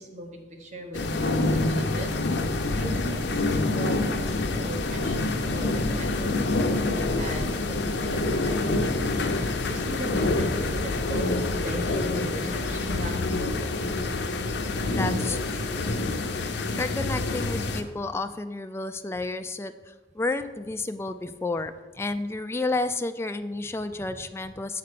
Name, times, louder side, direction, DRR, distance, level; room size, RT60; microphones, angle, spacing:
voice 1, 0.0-9.0 9.7-11.3 11.6-13.6, right 1 dB, 40° right, 2 dB, 1.1 m, -39 dB
sound 1, 0.9-17.8, left 2 dB, 80° left, 0.7 m, -27 dB
voice 2, 14.8-15.9 16.7-24.8, left 3 dB, 15° left, 9 dB, 0.3 m, -31 dB
6.9 x 4.2 x 6.7 m, 1.2 s
head